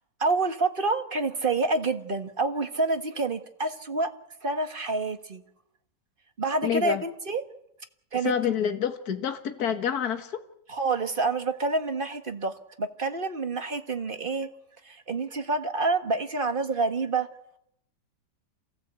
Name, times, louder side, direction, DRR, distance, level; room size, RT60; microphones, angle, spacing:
voice 1, 0.2-4.1 4.4-5.4 6.4-7.4 8.1-8.3 10.7-14.5 14.8-17.3, right 3 dB, 30° right, 1.5 m, -28 dB
voice 2, 6.6-7.0 8.2-10.4, left 8 dB, 55° left, 2.0 m, -27 dB
28.0 x 17.0 x 8.3 m
omnidirectional pair, 1.9 m